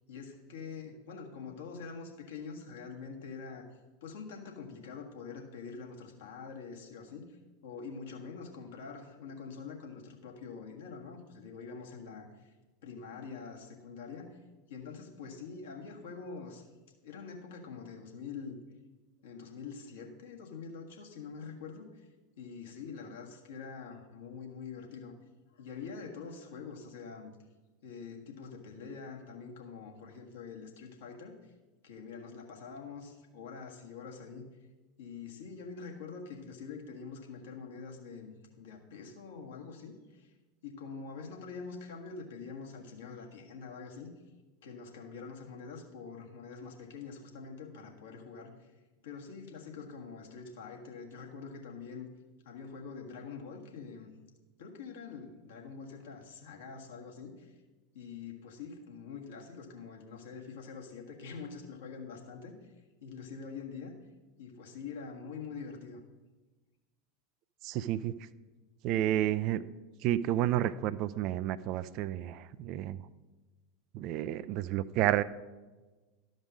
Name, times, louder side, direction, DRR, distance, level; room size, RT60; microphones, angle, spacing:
voice 1, 0.1-3.6 4.0-12.5 12.8-14.4 14.7-16.7 17.0-18.6 19.2-22.1 22.4-25.1 25.5-27.3 27.8-31.5 31.8-34.5 35.0-40.3 40.6-44.1 44.6-48.7 49.0-52.1 52.4-54.1 54.6-57.6 57.9-62.5 63.0-63.9 64.4-66.0, left 5 dB, 60° left, 1 dB, 1.6 m, -45 dB
voice 2, 67.6-68.1 68.8-69.7 70.0-73.0 73.9-75.2, right 13 dB, 45° right, 15 dB, 0.4 m, -30 dB
12.5 x 5.2 x 6.3 m, 1.2 s
figure-of-eight pair, 80°, 0 cm